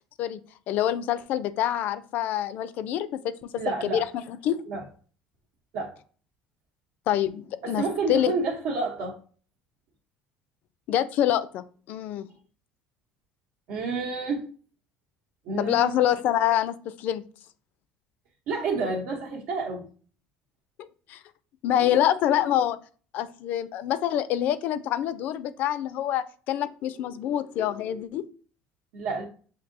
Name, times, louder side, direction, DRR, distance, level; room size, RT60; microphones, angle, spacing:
voice 1, 0.7-3.5 3.8-4.6 7.1-7.8 8.1-8.3 10.9-12.3 15.6-17.2 20.8-21.2 21.6-22.8 23.1-28.3, left 11 dB, 60° left, 0.4 m, -26 dB
voice 2, 3.5-4.0 4.7-4.8 5.7-5.9 7.6-9.2 13.7-14.4 15.4-16.0 18.5-19.9 28.9-29.3, right 3 dB, 70° right, 0.9 m, -29 dB
6.7 x 2.7 x 2.6 m
cardioid pair, 115°, 3 cm